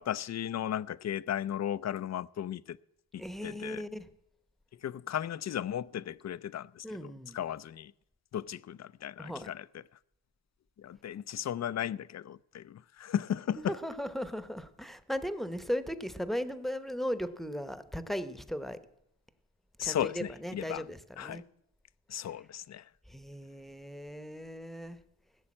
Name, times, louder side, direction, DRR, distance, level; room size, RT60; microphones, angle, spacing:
voice 1, 0.0-2.8 3.1-3.8 4.8-7.9 8.3-9.6 10.8-13.8 19.8-20.8 21.2-21.4 22.1-22.9, left 10 dB, 40° left, 0.4 m, -35 dB
voice 2, 3.2-4.1 6.8-7.4 9.2-9.5 13.5-18.8 19.8-21.5 23.1-25.0, equal, ahead, 0.9 m, -37 dB
16.0 x 6.8 x 8.7 m
cardioid pair, 75°, 42 cm